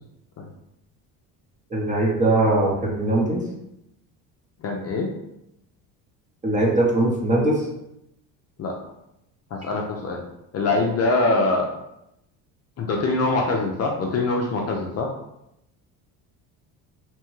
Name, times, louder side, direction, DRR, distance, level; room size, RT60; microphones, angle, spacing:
voice 1, 1.7-3.4 6.4-7.7, right 2 dB, 20° right, -2 dB, 0.7 m, -21 dB
voice 2, 4.6-5.1 8.6-8.8 9.5-10.2 10.5-11.7 12.8-15.1, left 2 dB, 40° left, 1 dB, 0.5 m, -23 dB
2.9 x 2.2 x 3.1 m, 0.82 s
supercardioid pair, 90°, 40 cm